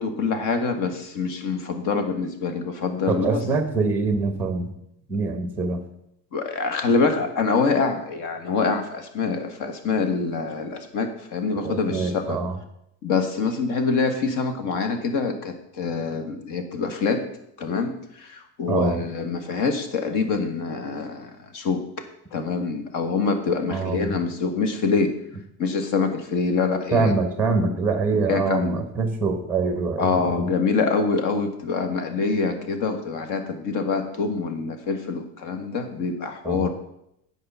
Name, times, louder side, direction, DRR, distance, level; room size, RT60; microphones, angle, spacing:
voice 1, 0.0-3.4 6.3-12.4 13.0-17.2 17.6-21.8 22.3-25.1 25.6-27.1 27.7-27.8 28.3-28.8 30.0-36.7, left 4 dB, 50° left, 6 dB, 1.5 m, -25 dB
voice 2, 3.1-4.7 5.1-5.8 11.6-12.6 18.7-19.0 23.7-24.1 26.9-30.5 36.4-36.7, right 4 dB, 5° right, 6 dB, 1.0 m, -24 dB
9.6 x 4.9 x 6.8 m, 0.78 s
cardioid pair, 160°, 41 cm